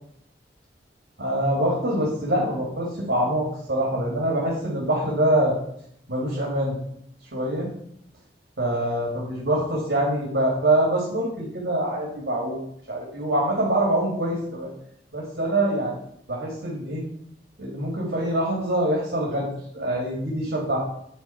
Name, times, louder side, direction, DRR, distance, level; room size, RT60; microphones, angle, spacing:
voice 1, 1.2-5.6 6.1-6.8 7.3-7.7 8.6-12.6 12.9-14.7 15.1-15.9 16.3-17.0 17.6-19.5 19.7-20.8, right 1 dB, 65° right, -4 dB, 2.3 m, -24 dB
10.0 x 4.2 x 5.7 m, 0.71 s
head